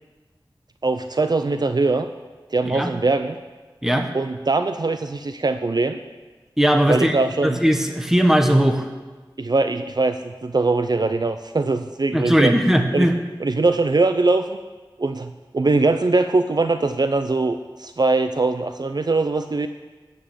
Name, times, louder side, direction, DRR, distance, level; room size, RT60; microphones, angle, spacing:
voice 1, 0.8-2.1 2.5-3.4 4.1-6.0 6.9-7.6 9.4-12.5 12.9-13.1 13.4-14.6 15.0-19.7, right 3 dB, 55° right, 8 dB, 0.6 m, -21 dB
voice 2, 6.6-7.2 7.4-8.9 12.1-13.1, equal, 5° right, 4 dB, 1.3 m, -18 dB
13.0 x 5.4 x 9.1 m, 1.3 s
wide cardioid pair, 65°, 9 cm